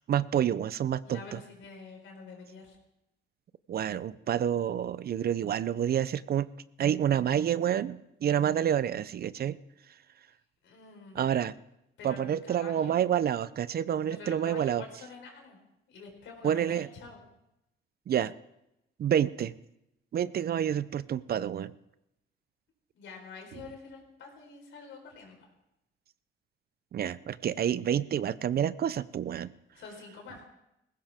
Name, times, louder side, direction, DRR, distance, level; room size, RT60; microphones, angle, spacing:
voice 1, 0.0-1.4 3.7-6.5 6.8-9.6 11.1-11.5 12.0-14.8 16.4-16.9 18.1-18.3 19.0-19.5 20.1-21.7 23.5-23.6 26.9-29.5, right 9 dB, 50° right, 17 dB, 0.5 m, -28 dB
voice 2, 1.0-2.8 10.6-11.2 12.0-13.1 14.1-15.6 15.9-17.2 23.0-25.5 29.7-30.4, left 4 dB, 75° left, 2 dB, 4.4 m, -47 dB
19.0 x 16.0 x 3.6 m, 0.87 s
cardioid pair, 90°, 20 cm